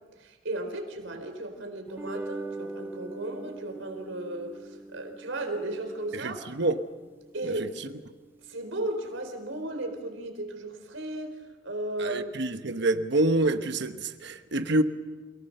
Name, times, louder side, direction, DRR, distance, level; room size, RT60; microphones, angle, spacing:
voice 1, 0.2-6.5 7.3-7.9 8.4-11.4 11.6-12.3, right 1 dB, 85° right, 4.4 m, -35 dB
sound 1, 1.9-8.4, right 2 dB, 10° right, 0.8 m, -42 dB
voice 2, 6.1-6.8 7.4-7.5 12.0-14.8, right 2 dB, 60° right, 1.2 m, -27 dB
28.5 x 19.0 x 6.7 m
head